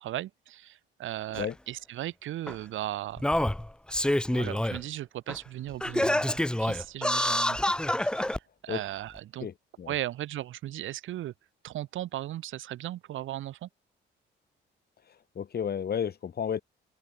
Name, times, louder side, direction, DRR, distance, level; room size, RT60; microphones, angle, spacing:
voice 1, 0.0-3.3 4.3-7.6 8.0-9.5 9.9-11.3 11.6-13.7, right 13 dB, 80° right, 1.7 m, -37 dB
Singing, 1.3-1.4 2.5-2.6 3.2-4.8 5.3-5.4 5.8-8.4 9.2-9.3, left 1 dB, 5° left, 0.7 m, -27 dB
voice 2, 9.4-9.9 15.4-16.6, left 8 dB, 55° left, 3.9 m, -32 dB
open air
cardioid pair, 90°, 20 cm